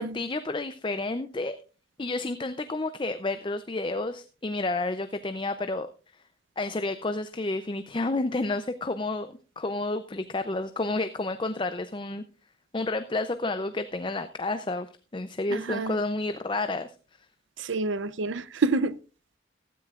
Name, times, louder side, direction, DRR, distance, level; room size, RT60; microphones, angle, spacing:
voice 1, 0.0-1.6 2.0-5.9 6.6-12.2 12.7-16.9, left 2 dB, 25° left, 0.5 m, -30 dB
voice 2, 15.5-16.0 17.6-19.0, right 3 dB, 85° right, 0.6 m, -28 dB
15.5 x 13.5 x 2.4 m
head